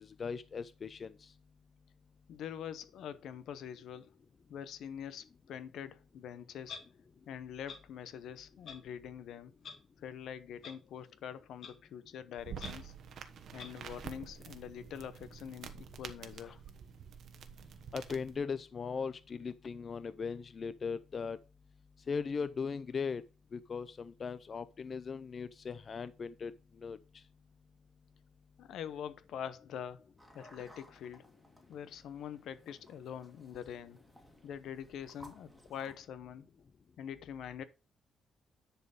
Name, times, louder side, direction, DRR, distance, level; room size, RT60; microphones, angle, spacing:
voice 1, 0.0-1.3 16.4-16.5 17.9-21.4 22.1-23.2 23.5-26.5 26.8-27.0, left 5 dB, 30° left, 0.4 m, -38 dB
voice 2, 2.3-4.1 4.5-6.8 7.3-9.5 10.0-12.9 13.5-16.6 28.6-30.1 30.3-31.3 31.7-34.0 34.4-36.5 37.0-37.6, left 9 dB, 70° left, 0.8 m, -44 dB
Clock, 6.7-6.8 7.7-7.8 8.7-8.8 9.6-9.7 10.6-10.7 11.6-11.7 12.6-12.7 13.6-13.7, left 6 dB, 55° left, 1.7 m, -45 dB
sound 1, 12.4-18.4, right 7 dB, 55° right, 1.1 m, -48 dB
sound 2, 30.2-36.0, equal, ahead, 1.9 m, -59 dB
10.0 x 4.5 x 5.1 m
cardioid pair, 170°, 0 cm